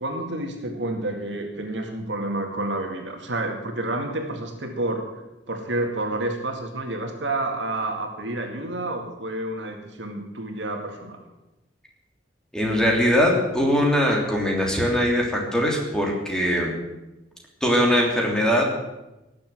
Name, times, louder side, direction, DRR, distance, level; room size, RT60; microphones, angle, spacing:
voice 1, 0.0-5.0 5.5-11.2, right 2 dB, 70° right, 3 dB, 2.3 m, -29 dB
voice 2, 12.5-16.7 17.6-18.7, equal, 5° left, -1 dB, 3.2 m, -21 dB
18.5 x 7.6 x 7.8 m, 1.0 s
head